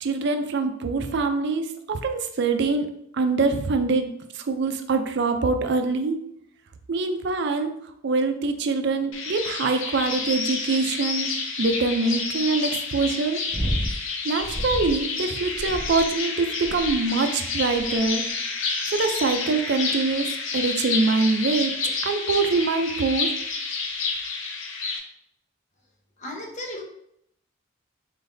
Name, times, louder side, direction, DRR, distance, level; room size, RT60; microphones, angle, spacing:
voice 1, 0.0-2.9 3.2-4.1 4.4-6.2 6.9-7.7 8.0-11.3 11.6-13.4 14.2-18.2 18.9-20.3 20.5-21.7 22.0-23.3, right 3 dB, 55° right, 6 dB, 0.4 m, -24 dB
sound 1, 9.1-25.0, left 4 dB, 75° left, 0.7 m, -29 dB
sound 2, 13.5-14.0 14.4-15.0 15.5-16.1 16.6-17.1 17.7-18.1 18.8-19.2 20.1-20.2, equal, 5° right, 1.0 m, -31 dB
voice 2, 26.2-26.8, left 1 dB, 35° left, 0 dB, 0.8 m, -35 dB
4.0 x 3.9 x 2.6 m, 0.73 s
head